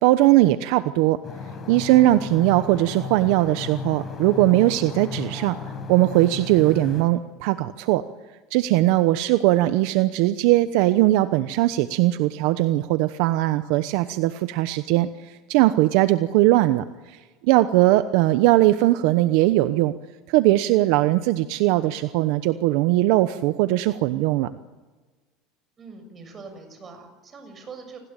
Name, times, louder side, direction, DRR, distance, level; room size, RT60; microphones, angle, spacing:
voice 1, 0.0-1.2 1.7-5.6 5.9-8.0 8.5-19.9 20.3-24.5, right 16 dB, 65° right, 12 dB, 1.0 m, -20 dB
sound 1, 1.2-7.0, left 5 dB, 30° left, 5.9 m, -35 dB
voice 2, 25.8-28.0, right 4 dB, 25° right, 7 dB, 6.9 m, -42 dB
28.5 x 19.5 x 9.1 m, 1.3 s
supercardioid pair, 140°, 0 cm